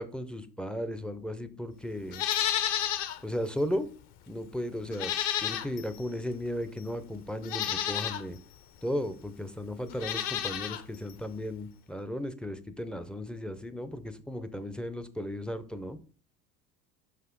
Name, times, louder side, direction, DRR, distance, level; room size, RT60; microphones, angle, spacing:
voice 1, 0.0-2.2 3.2-3.9 4.3-5.1 5.4-8.4 8.8-16.0, equal, ahead, 10 dB, 0.4 m, -35 dB
Livestock farm animals working animals, 2.1-3.2 3.6-3.7 4.9-6.0 6.8-6.9 7.4-8.2 9.9-10.8 11.1-11.2, left 11 dB, 55° left, 0.8 m, -31 dB
5.8 x 5.5 x 3.7 m, 0.41 s
hypercardioid pair, 80°, 47 cm